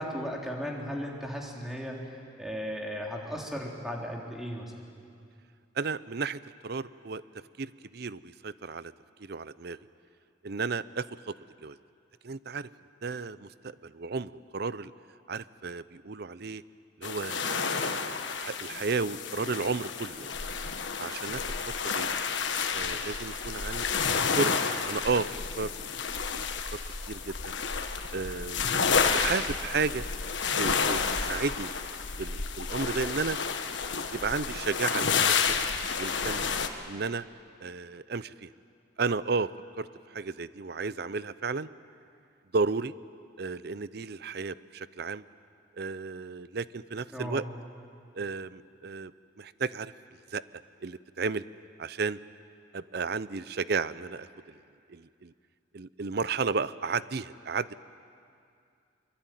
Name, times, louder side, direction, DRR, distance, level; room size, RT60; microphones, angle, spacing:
voice 1, 0.0-4.7 47.1-47.5, equal, ahead, -1 dB, 3.4 m, -36 dB
voice 2, 5.8-7.2 7.6-8.9 9.2-9.8 10.4-11.3 11.6-11.8 12.2-12.7 13.0-14.9 15.3-16.6 17.0-18.0 18.4-20.3 21.0-21.4 21.8-22.1 22.7-24.5 24.9-25.3 25.6-25.7 26.3-26.8 27.1-27.5 28.1-30.0 30.6-31.7 32.2-33.4 34.1-35.6 36.0-36.5 36.9-37.3 37.6-38.5 39.0-39.5 39.8-41.7 42.5-42.9 43.4-45.2 45.8-47.4 48.1-49.1 49.4-49.9 50.3-50.4 50.8-51.4 51.8-52.2 52.7-54.6 54.9-55.3 55.7-57.7, right 4 dB, 55° right, 16 dB, 0.6 m, -33 dB
sound 1, 17.0-36.7, left 5 dB, 75° left, 1.5 m, -30 dB
24.0 x 23.0 x 9.2 m, 2.4 s
head